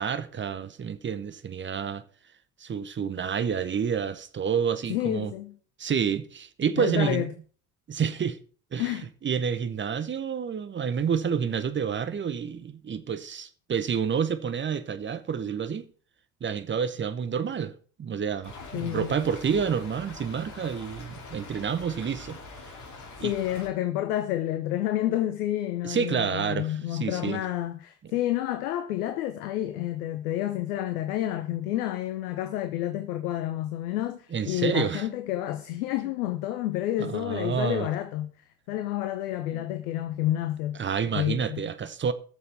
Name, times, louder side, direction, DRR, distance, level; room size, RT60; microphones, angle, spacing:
voice 1, 0.0-2.0 2.6-5.3 5.8-7.3 7.9-8.4 8.7-9.0 9.2-15.9 16.4-17.7 18.0-22.4 23.2-23.3 25.8-27.4 34.3-35.1 37.0-37.9 39.5-39.6 40.8-42.1, right 7 dB, 25° right, 0.9 m, -29 dB
voice 2, 4.9-5.6 6.8-7.3 8.8-9.1 18.7-19.1 23.2-38.3 38.7-40.8 41.1-41.6, left 13 dB, 70° left, 0.9 m, -29 dB
Stream / Trickle dribble, 18.4-23.7, left 3 dB, 40° left, 2.9 m, -44 dB
20.5 x 6.9 x 3.4 m
figure-of-eight pair, 60°, 47 cm